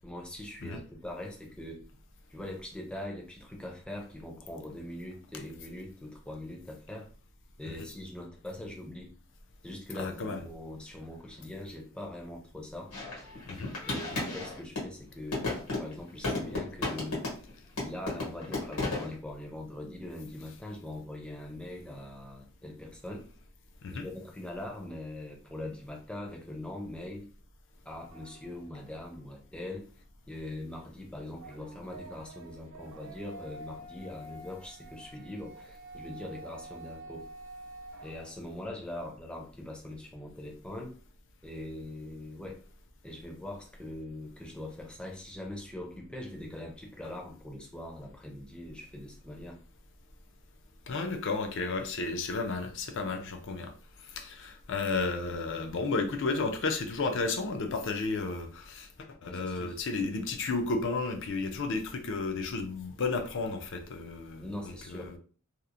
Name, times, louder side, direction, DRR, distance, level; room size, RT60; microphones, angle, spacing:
voice 1, 0.0-1.9 2.3-7.1 7.6-9.1 9.6-12.9 13.9-17.2 17.8-23.3 23.9-27.3 27.8-29.9 30.3-37.3 38.0-40.9 41.4-42.6 43.0-49.6 59.2-59.8 64.4-65.2, left 1 dB, 5° left, 0.5 m, -42 dB
voice 2, 10.0-10.4 13.5-13.7 23.8-24.1 50.9-53.7 54.1-58.9 59.2-65.2, left 3 dB, 60° left, 0.5 m, -33 dB
sound 1, 12.9-14.9 15.3-17.5 17.8-19.1, left 2 dB, 85° left, 1.4 m, -33 dB
sound 2, 28.1-28.9 31.3-38.8, right 2 dB, 75° right, 0.5 m, -48 dB
2.8 x 2.0 x 2.5 m
head